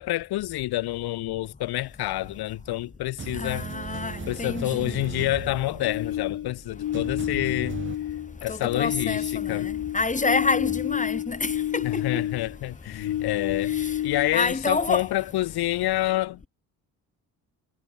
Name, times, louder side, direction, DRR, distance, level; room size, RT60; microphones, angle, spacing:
voice 1, 0.0-3.7 4.3-7.8 8.4-9.7 11.8-13.7 14.0-16.4, left 16 dB, 85° left, 0.8 m, -28 dB
sound 1, 2.0-2.8 3.2-8.0, right 6 dB, 30° right, 2.4 m, -38 dB
voice 2, 3.3-4.9 8.5-12.0 13.8-13.9 14.3-15.1, left 3 dB, 20° left, 4.2 m, -28 dB
sound 2, 5.8-8.4 8.6-12.6 12.9-14.6, left 12 dB, 60° left, 1.1 m, -30 dB
cardioid pair, 140°, 37 cm